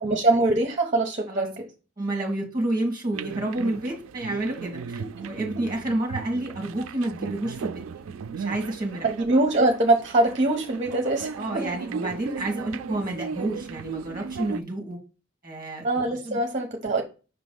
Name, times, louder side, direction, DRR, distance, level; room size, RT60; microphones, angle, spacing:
voice 1, 0.0-1.7 5.2-5.3 9.0-11.7 15.8-17.0, right 2 dB, 35° right, 0.8 m, -23 dB
voice 2, 2.0-9.1 11.4-15.0 15.4-16.4, right 1 dB, 20° right, 1.4 m, -30 dB
sound 1, 3.1-14.6, right 6 dB, 85° right, 0.4 m, -36 dB
6.0 x 3.0 x 5.2 m
head